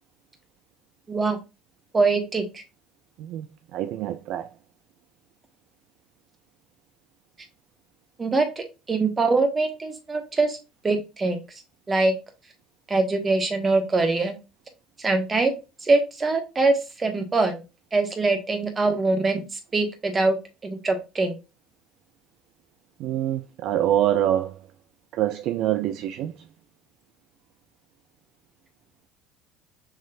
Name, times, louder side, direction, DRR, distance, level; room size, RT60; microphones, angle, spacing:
voice 1, 1.1-1.4 1.9-2.6 8.2-10.6 10.8-11.4 11.9-12.1 12.9-14.3 15.0-15.5 15.8-16.7 17.0-17.6 17.9-19.4 19.7-20.4 20.6-21.3, right 3 dB, 25° right, 1.4 m, -23 dB
voice 2, 3.2-4.5 23.0-24.7 25.1-26.4, right 12 dB, 60° right, 0.4 m, -25 dB
5.8 x 3.1 x 2.5 m
hypercardioid pair, 70°, 0 cm